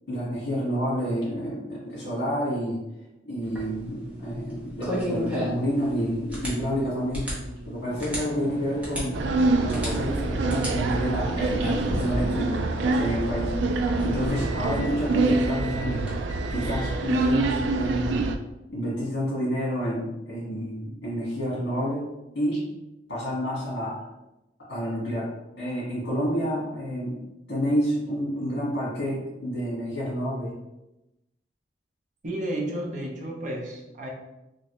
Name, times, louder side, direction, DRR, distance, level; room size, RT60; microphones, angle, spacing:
voice 1, 0.1-2.8 3.2-7.3 7.7-9.2 9.5-16.1 16.5-18.3 18.7-22.1 22.3-22.6 23.1-23.9 24.7-25.3 25.6-27.2 27.5-30.5, equal, 65° left, -7 dB, 1.4 m, -29 dB
sound 1, 3.4-16.2, equal, 10° right, 0.9 m, -35 dB
sound 2, 7.9-17.1, left 1 dB, 30° left, 1.0 m, -42 dB
sound 3, 9.1-18.4, right 2 dB, 75° right, 0.3 m, -26 dB
voice 2, 32.2-34.1, right 1 dB, 45° right, 0 dB, 0.6 m, -32 dB
3.1 x 2.8 x 2.9 m, 0.94 s
head